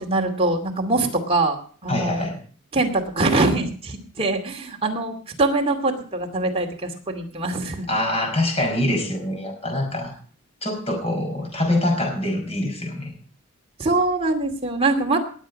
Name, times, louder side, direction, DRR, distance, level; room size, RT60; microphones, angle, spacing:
voice 1, 0.0-2.3 2.7-7.9 13.8-15.2, right 2 dB, 30° right, 2 dB, 2.5 m, -23 dB
voice 2, 1.9-2.4 7.9-10.1 10.6-13.1, left 1 dB, 30° left, 2 dB, 5.1 m, -24 dB
20.0 x 8.1 x 5.4 m, 0.43 s
head